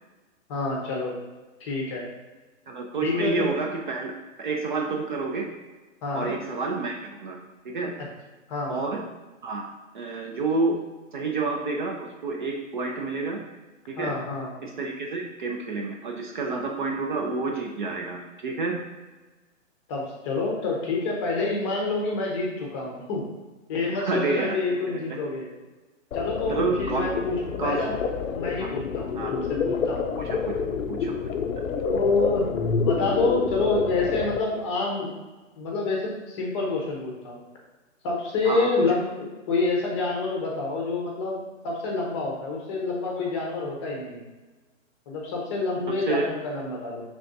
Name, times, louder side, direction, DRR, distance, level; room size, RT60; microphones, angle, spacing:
voice 1, 0.5-1.1 1.6-2.1 3.0-3.5 6.0-6.3 8.0-8.1 8.5-8.8 14.0-14.5 19.9-23.3 23.7-25.5 26.1-28.0 28.3-30.1 31.8-32.4 32.8-35.1 35.6-37.4 38.0-44.2 45.1-47.0, left 3 dB, 20° left, -2 dB, 0.6 m, -27 dB
voice 2, 2.7-4.1 4.4-5.5 6.1-7.4 7.6-7.9 8.7-9.0 9.4-9.7 9.9-10.8 11.1-13.4 13.9-14.1 14.6-18.8 24.0-24.6 24.9-25.0 26.5-27.1 27.6-27.8 28.6-28.7 29.2-29.3 30.2-30.4 30.9-31.1 38.4-38.7 46.1-46.3, right 3 dB, 40° right, 1 dB, 0.4 m, -29 dB
sound 1, 26.1-34.4, left 5 dB, 80° left, 0.5 m, -28 dB
5.0 x 3.4 x 2.6 m, 1.2 s
hypercardioid pair, 145°, 40 cm